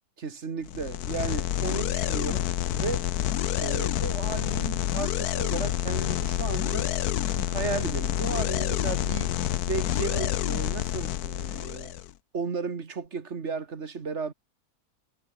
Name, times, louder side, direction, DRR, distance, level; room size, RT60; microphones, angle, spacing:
voice 1, 0.2-2.4 2.7-3.1 3.6-6.9 7.4-9.4 9.7-11.9 12.3-14.3, right 5 dB, 50° right, 1.9 m, -34 dB
sound 1, 0.7-12.1, left 12 dB, 85° left, 1.3 m, -28 dB
omnidirectional pair, 1.6 m